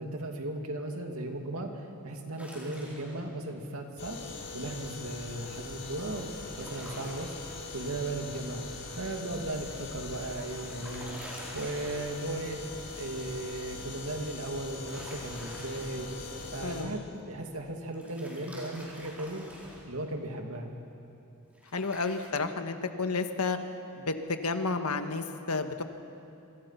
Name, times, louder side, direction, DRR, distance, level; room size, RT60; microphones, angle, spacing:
voice 1, 0.0-4.2 4.5-6.3 6.6-7.3 7.7-8.6 8.9-11.2 11.5-12.6 12.9-16.1 16.5-19.4 19.9-20.7, right 1 dB, 70° right, 3 dB, 2.5 m, -36 dB
sound 1, 2.4-3.3 6.4-7.6 10.0-12.4 14.6-16.0 17.9-19.9 21.5-22.3, equal, 5° right, 4.7 m, -48 dB
sound 2, 4.0-16.8, left 3 dB, 55° left, 6.9 m, -42 dB
voice 2, 16.6-16.9 21.7-23.6 24.0-25.8, left 4 dB, 85° left, 7 dB, 1.5 m, -31 dB
27.0 x 25.0 x 5.8 m, 2.7 s
head